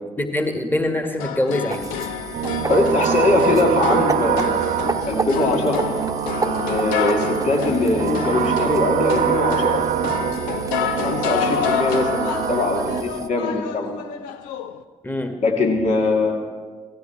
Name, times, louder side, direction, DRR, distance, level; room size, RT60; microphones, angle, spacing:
voice 1, 0.2-1.9 15.0-15.4, left 1 dB, 15° left, 5 dB, 1.8 m, -24 dB
sound 1, 1.2-14.8, left 8 dB, 85° left, 0.6 m, -29 dB
sound 2, 1.7-13.3, right 3 dB, 25° right, 1.0 m, -32 dB
sound 3, 2.3-13.0, right 9 dB, 70° right, 0.7 m, -24 dB
voice 2, 2.7-4.7 5.1-5.9 6.4-9.9 11.0-13.9 15.4-16.4, left 2 dB, 60° left, 1 dB, 2.5 m, -21 dB
17.5 x 14.0 x 4.6 m, 1.5 s
hypercardioid pair, 40°, 14 cm